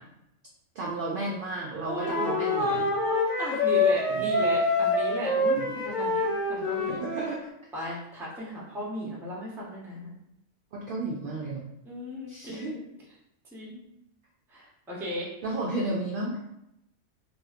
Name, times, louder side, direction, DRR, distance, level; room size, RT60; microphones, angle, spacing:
voice 1, 0.8-2.9 4.1-4.3 5.5-5.7 6.9-7.4 10.7-11.7 12.3-12.8 15.4-16.4, right 2 dB, 65° right, -3 dB, 0.5 m, -33 dB
voice 2, 1.8-7.0 7.7-10.1 11.8-12.8 13.5-13.8 14.5-15.3, equal, 5° right, -5 dB, 0.5 m, -34 dB
Wind instrument woodwind instrument, 2.0-7.3, left 2 dB, 80° left, 1.1 m, -26 dB
2.7 x 2.7 x 2.4 m, 0.81 s
omnidirectional pair, 1.3 m